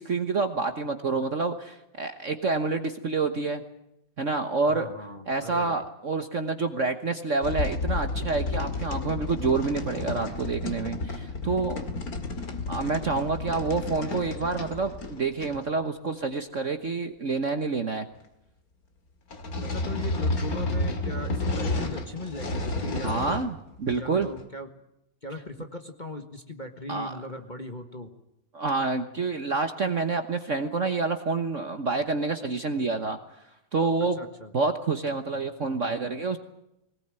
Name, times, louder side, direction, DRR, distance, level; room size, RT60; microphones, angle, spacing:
voice 1, 0.0-3.6 4.2-4.9 5.3-11.8 12.7-18.1 23.0-24.3 26.9-27.1 28.5-33.2 33.7-34.2 34.5-36.4, right 4 dB, 45° right, 7 dB, 1.3 m, -28 dB
voice 2, 4.6-5.9 19.6-23.4 23.9-24.7 25.2-28.1 34.2-34.5, left 2 dB, 25° left, 6 dB, 1.5 m, -39 dB
sound 1, 7.4-15.7 19.3-23.5 23.9-24.4, left 2 dB, 45° left, 2.6 m, -31 dB
21.5 x 19.5 x 9.0 m, 0.85 s
omnidirectional pair, 2.2 m